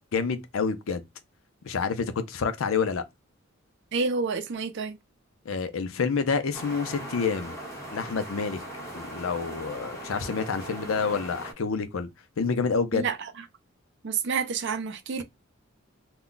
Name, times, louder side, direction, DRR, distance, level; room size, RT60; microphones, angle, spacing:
voice 1, 0.1-1.0 1.6-3.0 5.5-7.6 7.9-8.6 8.9-12.1 12.4-13.1, left 5 dB, 75° left, 0.5 m, -28 dB
voice 2, 3.9-5.0 12.9-13.3 14.0-15.2, right 5 dB, 60° right, 0.5 m, -29 dB
sound 1, 6.5-11.5, right 1 dB, 15° left, 0.9 m, -39 dB
2.3 x 2.1 x 3.7 m
head